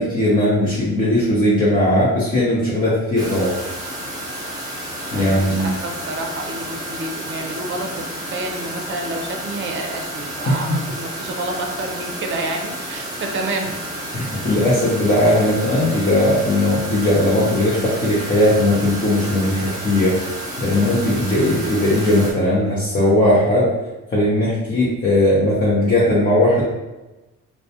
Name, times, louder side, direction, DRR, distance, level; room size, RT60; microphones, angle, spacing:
voice 1, 0.0-3.5 5.1-5.7 10.5-10.8 14.1-20.2 20.6-23.7 24.1-26.6, left 1 dB, 30° left, -7 dB, 0.7 m, -18 dB
sound 1, 3.2-22.3, right 1 dB, 10° right, 0.8 m, -31 dB
voice 2, 5.1-13.7, right 2 dB, 40° right, 3 dB, 0.5 m, -29 dB
2.3 x 2.1 x 2.8 m, 1.1 s
cardioid pair, 90°, 30 cm